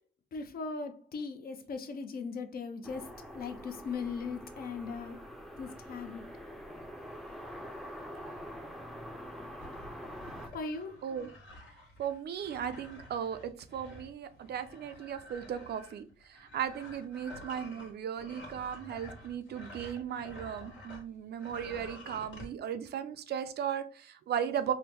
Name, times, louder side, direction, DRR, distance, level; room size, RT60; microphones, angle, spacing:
voice 1, 0.3-5.2 5.6-6.2 10.5-11.0, left 4 dB, 50° left, 0.5 m, -39 dB
sound 1, 2.8-10.5, equal, ahead, 0.5 m, -45 dB
sound 2, 9.6-21.1 21.3-22.5, left 1 dB, 75° left, 1.5 m, -50 dB
voice 2, 12.0-24.7, right 8 dB, 55° right, 0.4 m, -36 dB
3.6 x 2.1 x 2.9 m
cardioid pair, 90°, 20 cm